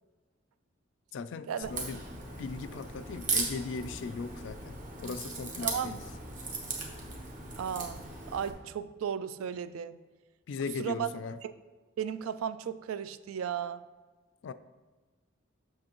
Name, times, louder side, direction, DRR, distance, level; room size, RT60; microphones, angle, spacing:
voice 1, 1.1-2.0 2.4-6.0 10.5-11.4 14.4-14.5, left 4 dB, 65° left, 13 dB, 0.3 m, -38 dB
Crack, 1.6-8.5, right 3 dB, 40° right, 0.9 m, -38 dB
voice 2, 5.6-6.0 7.6-10.0 10.8-11.1 11.4-11.5 12.0-13.8, right 8 dB, 90° right, 14 dB, 0.3 m, -35 dB
7.6 x 6.2 x 3.0 m, 1.3 s
head